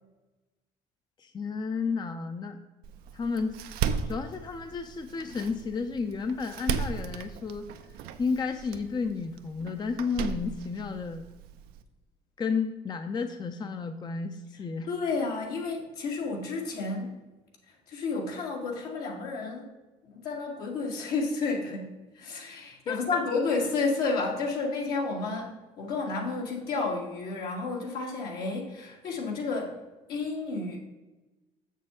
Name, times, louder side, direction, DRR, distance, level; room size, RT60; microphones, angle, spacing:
voice 1, 1.2-2.6 3.1-3.5 4.0-7.7 8.2-11.3 12.4-14.9 22.9-23.2, left 5 dB, 25° left, 7 dB, 0.5 m, -32 dB
Door, 2.8-11.8, right 7 dB, 80° right, 0.6 m, -36 dB
voice 2, 14.9-17.1 17.9-19.7 20.0-29.8 30.1-30.8, left 3 dB, 75° left, -1 dB, 1.9 m, -31 dB
6.8 x 6.6 x 3.7 m, 1.1 s
supercardioid pair, 90°, 16 cm